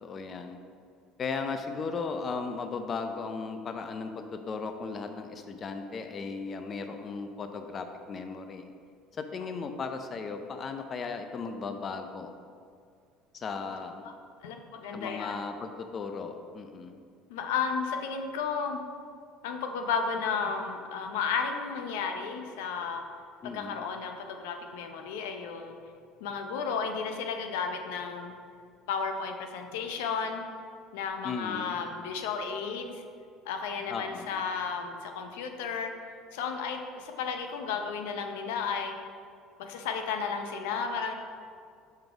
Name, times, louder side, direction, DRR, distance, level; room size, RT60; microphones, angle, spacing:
voice 1, 0.0-0.6 1.2-8.7 9.1-12.3 13.3-14.0 14.9-17.0 23.4-23.8 31.2-31.8 33.9-34.4, left 4 dB, 35° left, 7 dB, 0.4 m, -36 dB
voice 2, 14.4-15.4 17.3-18.8 19.4-23.0 23.4-25.7 26.2-28.3 28.9-30.4 30.9-33.0 33.4-35.9 36.3-38.9 39.6-41.1, left 5 dB, 90° left, 4 dB, 0.6 m, -33 dB
5.3 x 3.7 x 5.9 m, 2.3 s
supercardioid pair, 115°, 0 cm